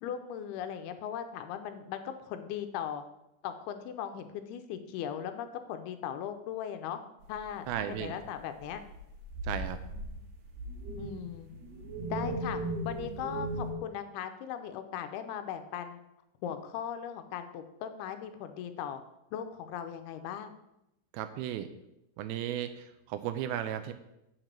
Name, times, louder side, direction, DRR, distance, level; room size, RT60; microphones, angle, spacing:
voice 1, 0.0-3.0 3.4-7.0 7.3-8.8 11.0-11.5 12.1-16.0 16.4-19.0 19.3-20.5, left 9 dB, 85° left, 9 dB, 2.6 m, -38 dB
sound 1, 7.2-8.3 8.6-13.7, right 1 dB, 55° right, 2.0 m, -38 dB
voice 2, 7.7-8.2 9.4-9.8 21.1-21.7 22.2-23.9, right 10 dB, 80° right, 10 dB, 2.4 m, -35 dB
7.3 x 6.0 x 7.8 m, 0.87 s
omnidirectional pair, 4.6 m